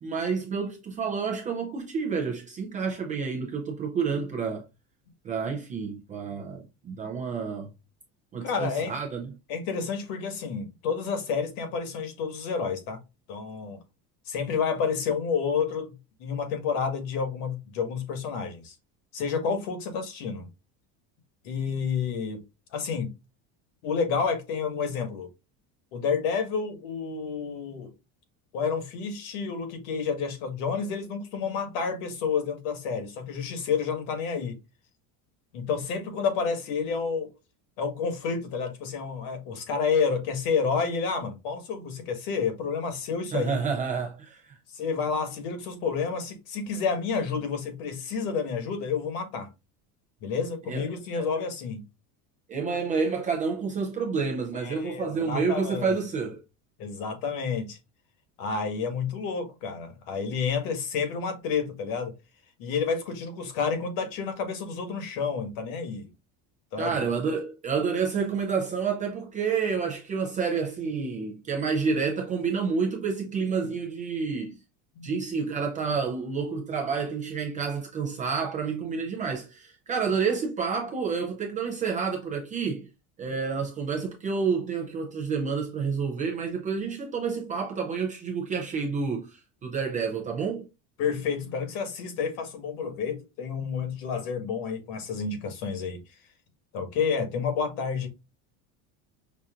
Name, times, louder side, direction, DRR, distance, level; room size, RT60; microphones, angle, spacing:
voice 1, 0.0-4.6 5.2-7.7 8.3-9.3 43.3-44.5 50.7-50.9 51.2-51.3 52.5-56.4 66.8-74.6 75.0-82.9 83.2-90.7, right 5 dB, 20° right, 0.4 m, -29 dB
voice 2, 8.4-8.9 9.5-13.0 13.3-13.8 14.2-18.7 19.1-20.5 21.4-22.4 22.7-23.1 23.8-25.3 25.9-27.9 28.5-34.6 35.5-37.3 37.8-43.6 44.7-49.5 50.2-51.8 54.5-55.9 56.8-57.8 58.4-62.1 62.6-66.1 66.7-67.0 74.9-75.2 91.0-96.0 96.7-98.1, left 5 dB, 65° left, 1.4 m, -30 dB
5.6 x 2.5 x 2.4 m
cardioid pair, 170°, 42 cm